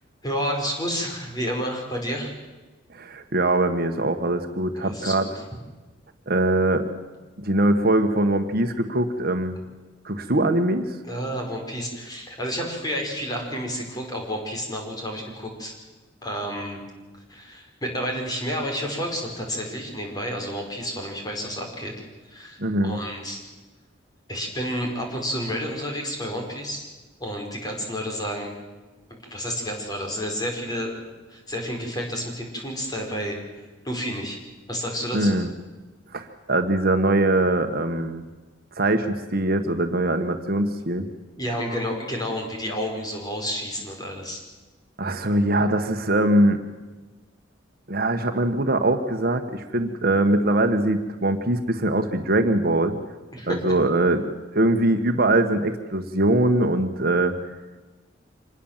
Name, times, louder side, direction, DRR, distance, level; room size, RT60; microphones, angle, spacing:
voice 1, 0.2-2.3 4.8-5.3 11.1-15.7 16.2-16.8 17.3-21.9 22.3-23.4 24.3-26.9 27.2-28.5 29.1-30.9 31.3-33.4 33.8-34.4 34.7-35.3 41.4-44.4 53.3-53.6, equal, 20° left, 1 dB, 5.1 m, -30 dB
voice 2, 2.9-5.3 6.3-6.9 7.4-9.6 10.0-11.0 22.6-23.0 35.1-35.5 36.1-38.2 38.8-41.1 45.0-46.6 47.9-52.9 53.5-57.3, right 1 dB, 50° right, 6 dB, 1.5 m, -22 dB
25.5 x 20.0 x 7.4 m, 1.2 s
head